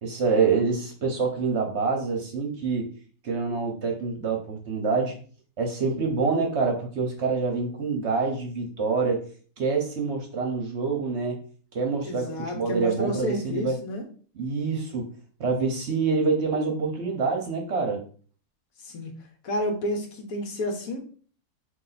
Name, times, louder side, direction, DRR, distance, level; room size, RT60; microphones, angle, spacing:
voice 1, 0.0-2.9 3.2-5.2 5.6-9.2 9.6-11.4 11.7-13.8 14.4-15.1 15.4-18.0, right 4 dB, 55° right, 2 dB, 0.9 m, -26 dB
voice 2, 12.0-14.1 18.8-19.1 19.4-21.0, left 1 dB, 70° left, 4 dB, 1.3 m, -30 dB
4.1 x 2.7 x 3.9 m, 0.43 s
omnidirectional pair, 1.6 m